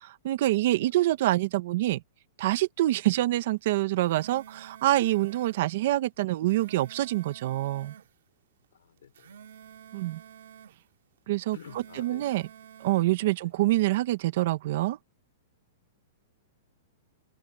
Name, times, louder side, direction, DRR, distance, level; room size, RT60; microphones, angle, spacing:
voice 1, 0.0-2.0 2.4-7.9 9.9-10.2 11.3-12.5 12.8-15.0, right 16 dB, 45° right, 1.3 m, -26 dB
sound 1, 3.8-5.6 6.3-8.1 9.0-10.8 11.4-13.1, right 9 dB, 70° right, 2.6 m, -50 dB
voice 2, 8.7-9.4 11.5-12.3 13.4-13.5, left 9 dB, 85° left, 4.7 m, -50 dB
open air
supercardioid pair, 170°, 0 cm